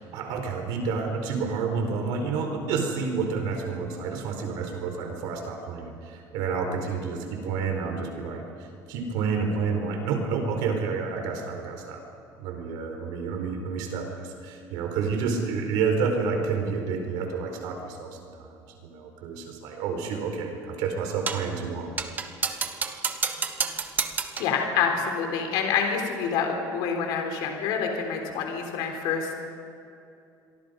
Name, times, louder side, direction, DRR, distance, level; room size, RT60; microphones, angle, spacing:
voice 1, 0.0-8.4 8.9-12.0 12.4-18.5 18.8-21.9, right 5 dB, 75° right, 3 dB, 4.5 m, -29 dB
sound 1, 21.3-21.5 22.0-24.6, right 5 dB, 25° right, 1.2 m, -30 dB
voice 2, 24.4-29.3, left 6 dB, 70° left, 3 dB, 3.8 m, -27 dB
27.5 x 23.0 x 5.3 m, 2.6 s
cardioid pair, 165°, 8 cm